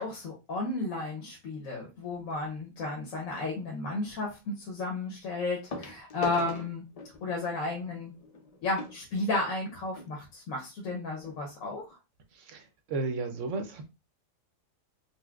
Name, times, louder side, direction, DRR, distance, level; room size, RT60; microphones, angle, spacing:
voice 1, 0.0-6.8 7.2-8.1 8.6-11.9, left 2 dB, 85° left, 1.2 m, -33 dB
sound 1, 2.1-2.4 4.1-4.2 5.7-10.1 10.9-11.0 11.2-11.4 11.9-12.0, left 3 dB, 70° left, 0.3 m, -42 dB
voice 2, 12.3-13.8, right 3 dB, 70° right, 0.9 m, -34 dB
4.1 x 2.2 x 2.3 m
omnidirectional pair, 1.4 m